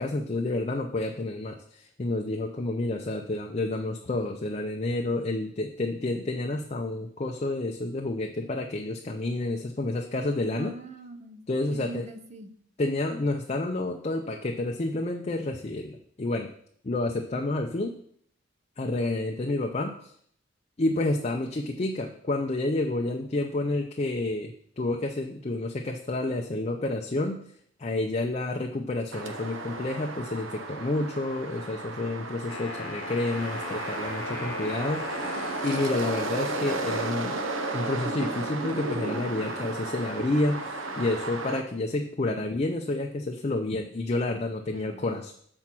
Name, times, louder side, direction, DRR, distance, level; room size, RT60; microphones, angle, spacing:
voice 1, 0.0-10.7 11.5-12.1 12.8-16.5 16.8-17.9 18.8-20.1 20.8-27.4 27.8-35.4 35.6-37.4 37.7-45.3, left 2 dB, 30° left, 2 dB, 0.5 m, -29 dB
voice 2, 10.5-11.4 11.7-12.5 44.7-45.2, right 2 dB, 35° right, 9 dB, 0.6 m, -42 dB
sound 1, 29.1-41.6, right 2 dB, 70° right, 0.8 m, -34 dB
Wind instrument woodwind instrument, 32.4-36.4, left 4 dB, 80° left, 1.0 m, -40 dB
7.4 x 4.4 x 5.9 m, 0.63 s
head